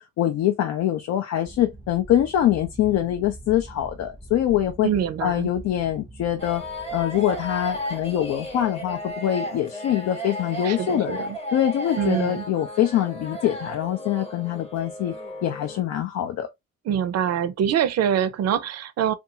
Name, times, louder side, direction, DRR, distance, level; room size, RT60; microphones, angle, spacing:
voice 1, 0.0-4.9 5.2-6.6 6.9-11.2 11.5-15.1 15.4-16.5, left 11 dB, 65° left, 0.5 m, -24 dB
sound 1, 1.4-9.3, right 2 dB, ahead, 0.6 m, -44 dB
voice 2, 4.8-5.5 10.6-11.4 12.0-12.4 16.9-19.1, right 9 dB, 55° right, 0.5 m, -24 dB
sound 2, 6.4-15.8, equal, 20° left, 0.9 m, -34 dB
2.6 x 2.3 x 2.7 m
cardioid pair, 90°, 30 cm